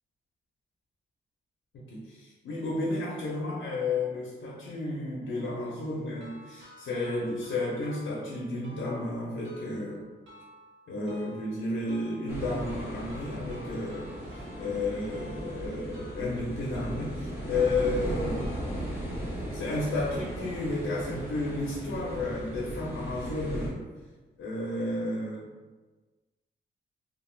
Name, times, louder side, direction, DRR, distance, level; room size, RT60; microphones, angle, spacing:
voice 1, 1.7-10.1 10.9-18.4 19.5-23.9 24.4-25.5, left 2 dB, 85° left, -4 dB, 0.6 m, -32 dB
sound 1, 6.2-19.2, equal, 70° right, 1.1 m, -53 dB
sound 2, 12.3-23.7, equal, 10° right, 0.7 m, -37 dB
2.4 x 2.3 x 3.2 m, 1.3 s
wide cardioid pair, 160°, 20 cm